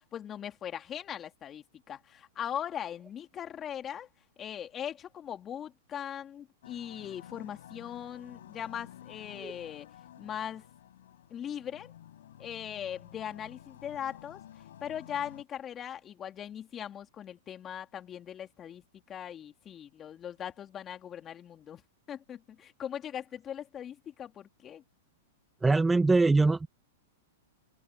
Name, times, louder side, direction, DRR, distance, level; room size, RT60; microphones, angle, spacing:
voice 1, 0.0-4.1 4.4-9.9 10.2-10.6 11.3-11.9 12.4-14.4 14.8-21.8 22.1-24.8, left 9 dB, 25° left, 3.1 m, -40 dB
sound 1, 6.6-15.4, left 11 dB, 70° left, 6.3 m, -52 dB
voice 2, 25.6-26.7, right 3 dB, 10° right, 1.4 m, -23 dB
open air
hypercardioid pair, 120°, 0 cm